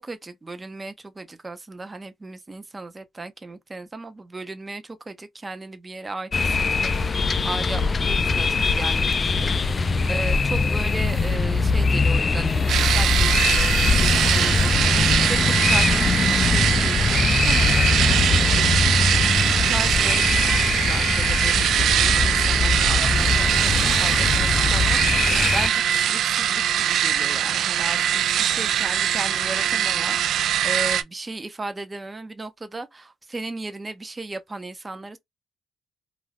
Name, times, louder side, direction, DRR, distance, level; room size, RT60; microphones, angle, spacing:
voice 1, 0.0-35.2, right 3 dB, 20° right, 0.6 m, -36 dB
sound 1, 6.3-25.7, left 4 dB, 35° left, 0.3 m, -22 dB
sound 2, 12.7-31.0, right 10 dB, 75° right, 0.3 m, -22 dB
2.4 x 2.2 x 3.3 m
cardioid pair, 90°, 0 cm